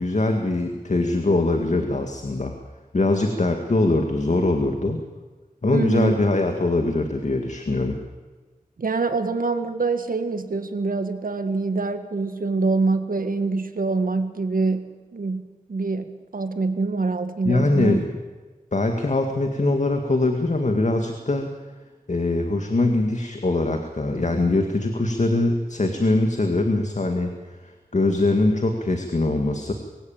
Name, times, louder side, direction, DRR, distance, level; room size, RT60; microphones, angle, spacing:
voice 1, 0.0-2.6 2.9-5.0 5.6-8.0 17.5-18.1 18.7-21.5 22.1-29.7, left 2 dB, 55° left, 5 dB, 2.1 m, -22 dB
voice 2, 5.7-6.2 8.8-18.0, right 3 dB, 75° right, 9 dB, 1.8 m, -25 dB
24.0 x 16.5 x 8.9 m, 1.4 s
wide cardioid pair, 55°, 14 cm